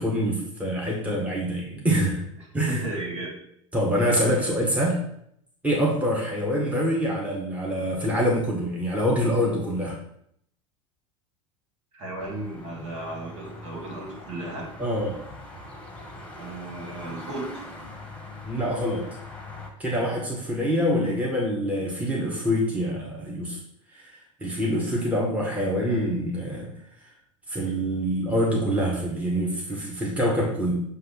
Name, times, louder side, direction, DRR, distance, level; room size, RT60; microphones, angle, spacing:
voice 1, 0.0-2.2 2.5-2.8 3.7-5.0 5.6-10.0 14.8-15.2 18.4-19.0 19.8-23.6 23.9-24.1 24.4-26.7 27.5-30.8, equal, 10° right, -3 dB, 1.7 m, -25 dB
voice 2, 2.7-3.3 6.4-6.5 11.9-14.7 16.4-17.6, right 2 dB, 50° right, -1 dB, 2.6 m, -34 dB
sound 1, 12.2-19.7, left 2 dB, 5° left, 1.6 m, -42 dB
7.6 x 2.8 x 5.7 m, 0.71 s
figure-of-eight pair, 80°, 16 cm